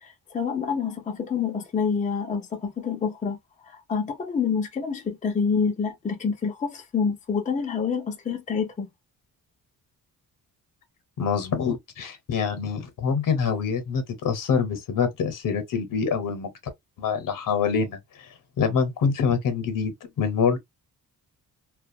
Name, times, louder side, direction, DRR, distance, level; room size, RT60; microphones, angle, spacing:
voice 1, 0.0-3.4 3.7-8.9, left 6 dB, 20° left, 0.4 m, -27 dB
voice 2, 11.2-16.5 17.0-18.0 18.6-20.6, left 6 dB, 60° left, 0.8 m, -25 dB
2.3 x 2.2 x 2.6 m
wide cardioid pair, 150°, 35 cm